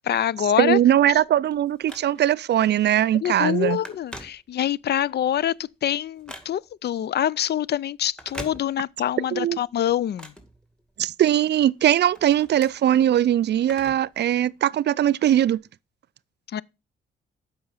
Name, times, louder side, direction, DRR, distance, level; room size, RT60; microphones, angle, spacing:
voice 1, 0.0-0.8 3.2-5.5 5.8-10.3 16.5-16.6, left 10 dB, 55° left, 0.4 m, -25 dB
voice 2, 0.6-3.8 9.3-9.6 11.0-15.6, right 11 dB, 55° right, 0.4 m, -20 dB
Telephone, 1.0-2.5 2.9-3.2 3.4-4.9 5.3-6.9 8.0-9.1 9.5-11.2 11.7-14.2 14.5-14.6 15.5-15.6, equal, 5° left, 2.1 m, -43 dB
7.7 x 5.5 x 5.6 m
cardioid pair, 65°, 21 cm